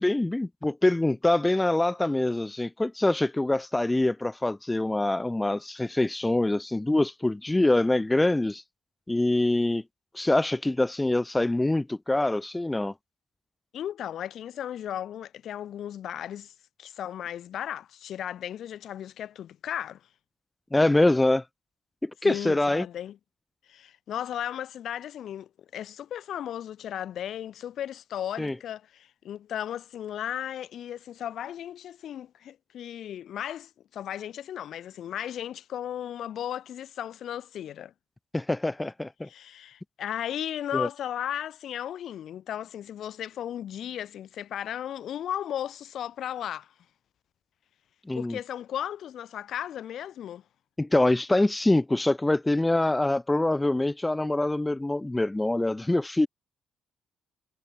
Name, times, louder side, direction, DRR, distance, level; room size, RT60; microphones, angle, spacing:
voice 1, 0.0-8.6 9.1-9.8 10.1-12.9 20.7-21.4 22.0-22.9 28.4-28.6 38.3-39.3 40.7-40.9 48.1-48.4 50.8-56.3, left 2 dB, 15° left, 2.2 m, -24 dB
voice 2, 13.7-16.5 16.8-20.0 22.2-23.2 23.7-37.9 39.3-46.7 48.1-50.4, left 10 dB, 70° left, 2.6 m, -35 dB
cardioid pair, 90°, 0 cm